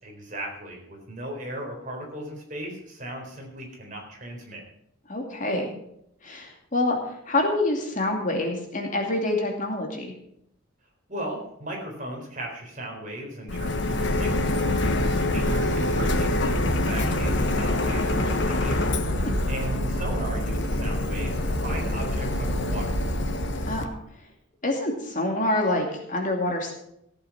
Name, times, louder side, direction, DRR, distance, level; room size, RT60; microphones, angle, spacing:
voice 1, 0.0-4.6 11.1-23.0, right 1 dB, 40° right, 0 dB, 4.1 m, -37 dB
voice 2, 5.1-5.7 6.2-7.0 7.3-10.1 14.7-15.0 19.2-19.4 23.7-23.9 24.6-26.7, left 2 dB, 40° left, 1 dB, 2.5 m, -26 dB
Printer, 13.5-23.8, left 1 dB, 60° left, 1.3 m, -25 dB
15.0 x 8.7 x 6.0 m, 0.73 s
head